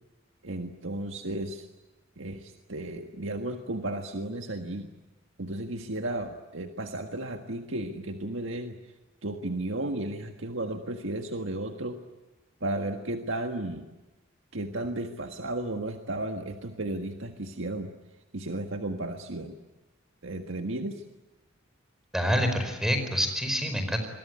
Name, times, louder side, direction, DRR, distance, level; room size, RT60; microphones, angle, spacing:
voice 1, 0.4-1.7 2.2-4.9 5.4-8.8 9.2-12.0 12.6-13.8 14.5-17.9 18.3-19.6 20.2-21.0, right 1 dB, 85° right, 5 dB, 1.7 m, -34 dB
voice 2, 22.1-24.1, equal, 5° right, 7 dB, 4.8 m, -27 dB
26.5 x 22.5 x 9.4 m, 1.1 s
head